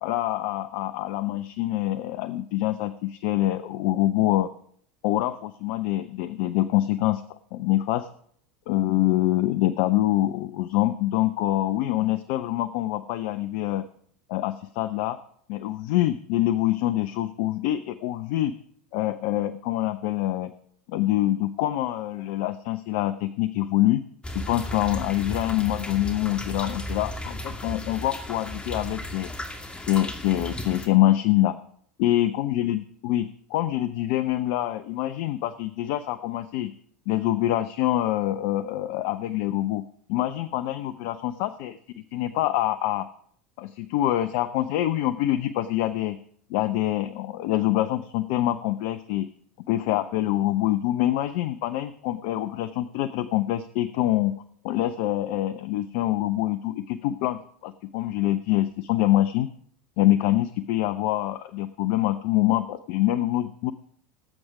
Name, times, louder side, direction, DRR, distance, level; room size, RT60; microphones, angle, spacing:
voice 1, 0.0-4.5 5.0-7.2 7.5-8.1 8.7-13.8 14.3-15.2 15.5-18.5 18.9-20.5 20.9-24.0 24.3-29.3 29.8-31.6 32.0-36.7 37.1-39.8 40.1-41.8 42.1-43.1 43.6-46.2 46.5-49.3 49.7-54.3 54.6-59.5 60.0-63.7, left 14 dB, 55° left, 13 dB, 0.6 m, -25 dB
sound 1, 24.2-30.9, left 1 dB, 15° left, 2.2 m, -35 dB
18.5 x 7.9 x 4.9 m, 0.64 s
figure-of-eight pair, 80°, 7 cm